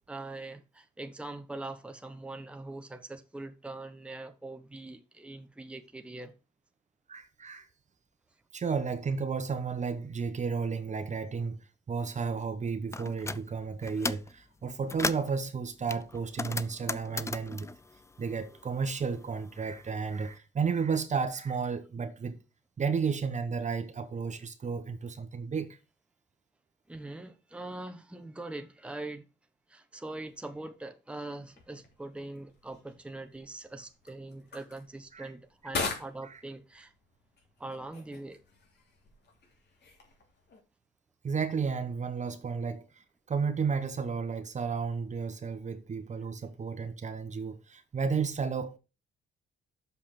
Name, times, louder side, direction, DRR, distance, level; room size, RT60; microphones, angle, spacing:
voice 1, 0.0-6.4 26.9-29.3 29.7-36.9 37.6-38.4, right 2 dB, 5° right, 1.0 m, -42 dB
voice 2, 7.1-7.7 8.5-17.7 18.2-22.4 22.8-25.7 35.1-35.3 36.2-36.4 41.2-48.8, right 5 dB, 35° right, 1.0 m, -33 dB
sound 1, 12.9-13.4 13.8-14.3 14.7-15.4 15.9-18.8 19.1-20.2, left 3 dB, 15° left, 0.4 m, -36 dB
sound 2, 31.4-40.6, left 4 dB, 60° left, 2.9 m, -43 dB
6.8 x 5.6 x 5.9 m
cardioid pair, 90°, 20 cm